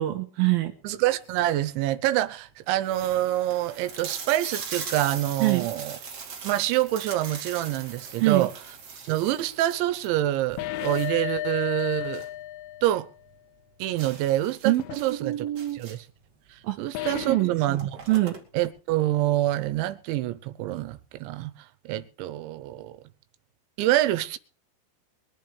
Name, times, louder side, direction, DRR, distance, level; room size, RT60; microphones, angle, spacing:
voice 1, 0.0-0.7 5.4-5.7 8.2-8.5 14.7-14.8 15.1-15.8 16.6-16.8 17.1-17.8 18.1-18.4, right 17 dB, 70° right, 2.5 m, -24 dB
voice 2, 0.8-6.0 6.4-8.5 9.1-12.2 12.8-13.1 13.8-15.5 15.7-16.0 16.8-18.0 18.5-21.5 21.9-23.0 23.8-24.4, right 14 dB, 85° right, 3.3 m, -26 dB
sound 1, 1.0-1.5 2.1-2.2 2.4-2.5 2.8-12.4 12.7-12.8 13.2-13.3 14.0-16.2 17.2-17.3 17.6-18.7, right 5 dB, 40° right, 3.1 m, -40 dB
sound 2, 10.6-13.1 14.8-15.0 17.0-17.6, left 14 dB, 80° left, 3.0 m, -33 dB
23.0 x 11.0 x 3.4 m
omnidirectional pair, 5.2 m